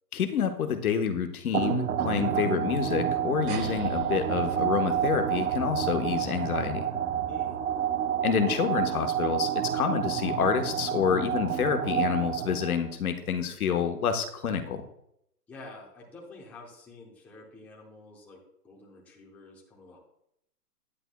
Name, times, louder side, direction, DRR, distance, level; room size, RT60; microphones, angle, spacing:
voice 1, 0.1-6.9 8.2-14.8, left 7 dB, 60° left, 7 dB, 1.2 m, -28 dB
sound 1, 1.5-12.9, right 9 dB, 55° right, 0.9 m, -29 dB
sound 2, 3.5-8.3, right 4 dB, 70° right, 2.1 m, -44 dB
voice 2, 7.2-7.6 15.5-20.0, left 2 dB, 5° left, -2 dB, 0.8 m, -49 dB
9.8 x 9.3 x 2.3 m, 0.75 s
hypercardioid pair, 150°, 48 cm